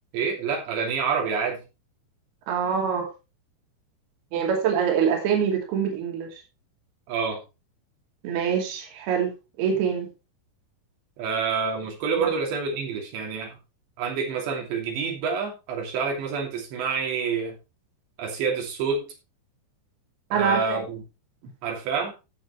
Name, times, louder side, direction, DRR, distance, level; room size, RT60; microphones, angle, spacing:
voice 1, 0.1-1.6 7.1-7.4 11.2-13.6 14.0-17.6 18.2-19.1 20.3-21.0 21.6-22.1, right 5 dB, 80° right, 0 dB, 5.0 m, -27 dB
voice 2, 2.5-3.1 4.3-6.4 8.2-9.3 9.6-10.1 12.2-12.3 20.3-20.8, right 7 dB, 65° right, 0 dB, 4.4 m, -24 dB
14.5 x 7.3 x 3.2 m, 0.27 s
omnidirectional pair, 5.0 m